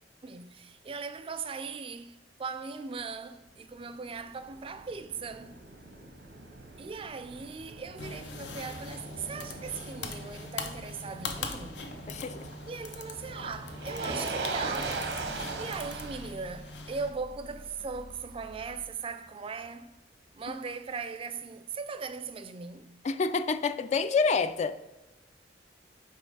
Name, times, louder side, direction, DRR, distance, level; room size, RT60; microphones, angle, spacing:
voice 1, 0.2-5.6 6.8-11.9 12.7-15.1 15.6-19.9 20.4-22.9, right 5 dB, 30° right, 0.4 m, -39 dB
Motor vehicle (road), 3.8-18.8, right 3 dB, 85° right, 0.9 m, -40 dB
sound 1, 8.0-17.1, left 4 dB, 85° left, 0.8 m, -42 dB
voice 2, 23.0-24.7, left 4 dB, 40° left, 0.3 m, -27 dB
5.5 x 4.6 x 4.7 m
head